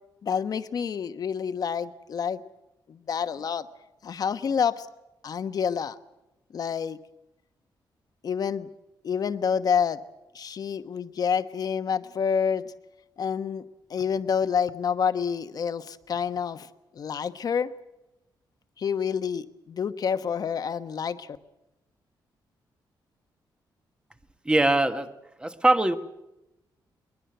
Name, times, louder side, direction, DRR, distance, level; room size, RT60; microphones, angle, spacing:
voice 1, 0.2-2.4 2.9-3.7 4.0-4.9 5.2-6.0 6.5-7.0 8.2-8.7 9.0-10.0 10.3-12.7 13.2-13.6 13.9-17.7 18.8-21.4, left 7 dB, 50° left, 10 dB, 1.1 m, -28 dB
voice 2, 24.4-25.1 25.4-26.0, right 2 dB, 10° right, 9 dB, 1.3 m, -22 dB
22.0 x 21.5 x 8.0 m, 0.93 s
wide cardioid pair, 135°, 8 cm